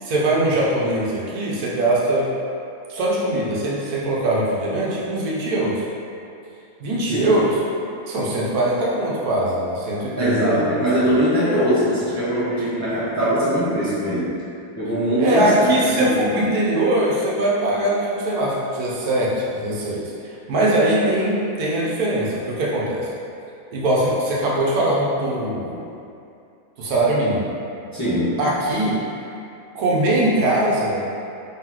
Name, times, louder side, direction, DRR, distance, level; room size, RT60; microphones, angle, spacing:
voice 1, 0.0-2.3 2.9-5.8 6.8-7.6 8.1-11.1 15.2-23.1 23.7-25.8 26.8-27.4 28.4-29.0 29.7-31.0, right 1 dB, 90° right, -5 dB, 1.3 m, -21 dB
voice 2, 10.2-14.3 14.8-16.4 27.9-28.4, equal, 15° left, -11 dB, 0.6 m, -21 dB
3.8 x 3.6 x 3.0 m, 2.6 s
omnidirectional pair, 1.5 m